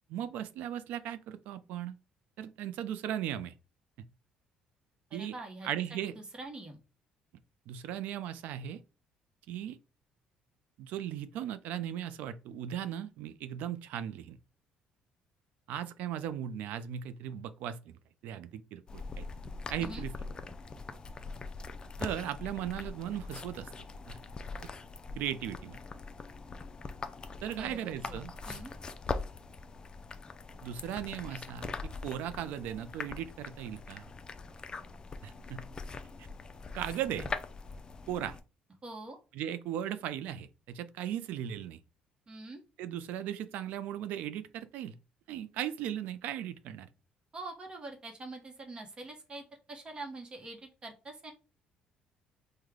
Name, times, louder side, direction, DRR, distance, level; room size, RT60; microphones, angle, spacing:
voice 1, 0.1-1.9 2.4-3.5 5.1-5.3 5.6-6.1 7.7-8.8 9.5-9.8 10.8-14.4 15.7-17.9 18.2-19.3 19.7-20.1 22.0-24.2 25.2-25.8 27.4-28.3 30.6-34.1 35.2-35.6 36.2-36.3 36.7-37.3 38.1-38.4 39.3-41.8 42.8-44.9 45.3-46.9, right 10 dB, 80° right, 0.3 m, -37 dB
voice 2, 5.1-6.8 19.8-20.0 27.6-28.2 28.5-28.7 38.8-39.2 42.3-42.6 47.3-51.3, right 2 dB, 35° right, 0.8 m, -45 dB
sound 1, 18.9-38.4, left 4 dB, 30° left, 0.4 m, -42 dB
3.2 x 2.1 x 3.6 m
supercardioid pair, 85°, 3 cm